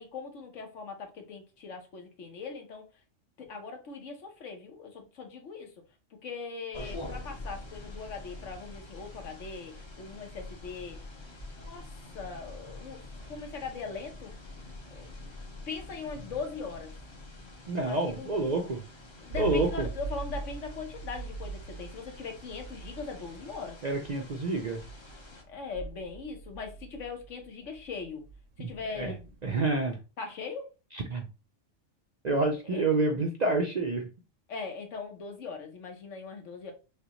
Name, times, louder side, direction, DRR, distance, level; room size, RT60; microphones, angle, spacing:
voice 1, 0.0-2.9 3.4-5.7 6.2-11.0 11.6-11.9 12.1-13.0 13.3-14.3 14.9-15.1 15.7-16.9 17.7-18.3 19.2-23.8 25.5-28.2 28.6-29.3 30.2-30.7 32.6-32.9 34.5-36.7, left 4 dB, 70° left, 1.3 m, -40 dB
sound 1, 6.7-25.4, left 2 dB, 25° left, 0.8 m, -46 dB
voice 2, 17.7-18.8 19.3-19.9 23.8-24.8 28.6-29.1 29.4-30.0 30.9-31.3 32.2-34.1, right 2 dB, 50° right, 0.5 m, -28 dB
sound 2, 19.3-29.7, right 3 dB, 75° right, 1.0 m, -42 dB
6.3 x 2.2 x 3.0 m
omnidirectional pair, 1.3 m